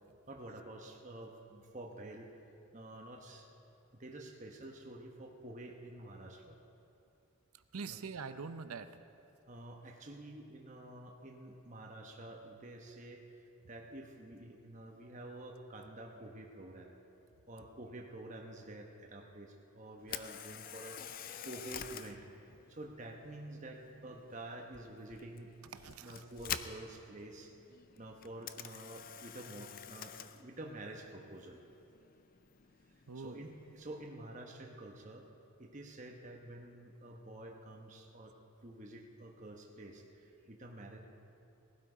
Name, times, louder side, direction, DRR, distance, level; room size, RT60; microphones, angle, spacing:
voice 1, 0.3-2.3 2.7-3.5 3.9-6.6 7.9-8.0 9.5-16.9 17.5-21.2 21.4-22.3 22.7-25.5 26.0-27.5 28.0-31.6 33.1-35.3 35.6-38.3 38.6-41.0, right 1 dB, 35° right, 1 dB, 1.0 m, -49 dB
voice 2, 7.7-8.9 25.7-26.3 33.1-33.4, right 5 dB, 85° right, 11 dB, 0.7 m, -44 dB
Camera, 20.0-34.1, left 9 dB, 40° left, 0.4 m, -48 dB
18.5 x 12.0 x 5.0 m, 2.8 s
head